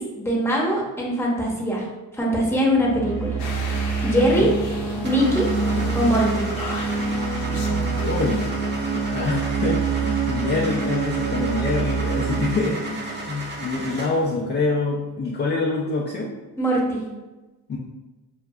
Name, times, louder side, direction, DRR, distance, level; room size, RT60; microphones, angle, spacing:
voice 1, 0.0-1.8 2.2-3.4 4.0-4.5 5.0-5.5 5.9-6.5 16.6-17.1, equal, 5° left, -3 dB, 0.8 m, -22 dB
sound 1, 2.7-14.2, right 4 dB, 65° right, 0.7 m, -26 dB
sound 2, 3.4-8.5, left 3 dB, 60° left, 0.7 m, -36 dB
voice 2, 4.1-4.5 8.0-8.5 8.9-16.3 17.7-17.8, left 3 dB, 25° left, -2 dB, 0.4 m, -26 dB
Car / Engine starting, 5.0-14.3, right 1 dB, 25° right, 0.6 m, -35 dB
2.3 x 2.1 x 3.5 m, 1.1 s
cardioid pair, 85°, 41 cm